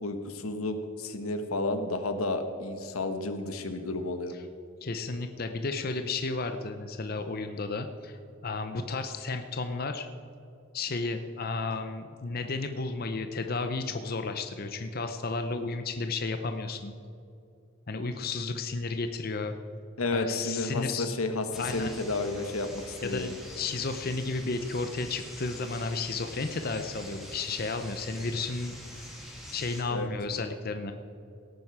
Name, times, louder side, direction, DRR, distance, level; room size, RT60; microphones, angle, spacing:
voice 1, 0.0-4.3 20.0-23.4 29.9-30.1, left 2 dB, 90° left, 8 dB, 1.2 m, -32 dB
voice 2, 4.8-10.1 10.7-16.9 17.9-19.6 20.1-21.1 21.6-22.0 23.0-28.8 29.5-30.9, left 3 dB, 45° left, 7 dB, 0.6 m, -33 dB
sound 1, 21.5-29.8, equal, ahead, 2.4 m, -45 dB
17.5 x 9.1 x 4.8 m, 2.6 s
head